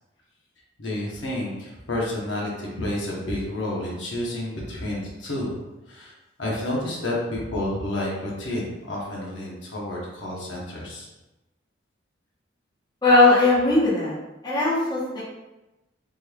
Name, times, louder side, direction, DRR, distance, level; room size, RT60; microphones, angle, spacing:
voice 1, 0.8-5.6 5.9-11.1, left 1 dB, 65° left, -4 dB, 0.9 m, -30 dB
voice 2, 13.0-14.1 14.4-15.2, left 2 dB, 25° left, -7 dB, 0.9 m, -18 dB
3.6 x 3.1 x 2.2 m, 1.0 s
head